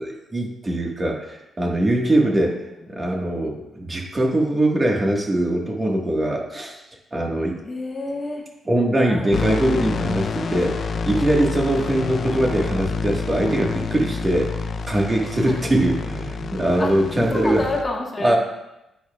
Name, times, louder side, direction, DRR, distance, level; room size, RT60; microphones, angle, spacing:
voice 1, 0.0-2.5 3.0-6.8 7.1-7.6 8.7-10.7 11.0-14.5 14.9-17.6 18.2-18.4, right 1 dB, 25° right, 0 dB, 1.6 m, -22 dB
voice 2, 2.2-2.6 7.6-8.4 9.1-9.4 11.8-11.9 15.4-15.6 16.8-18.4, left 2 dB, 25° left, 0 dB, 1.4 m, -29 dB
sound 1, 9.3-17.8, left 4 dB, 45° left, 0.4 m, -28 dB
10.0 x 9.1 x 2.4 m, 0.91 s
cardioid pair, 120°, 0 cm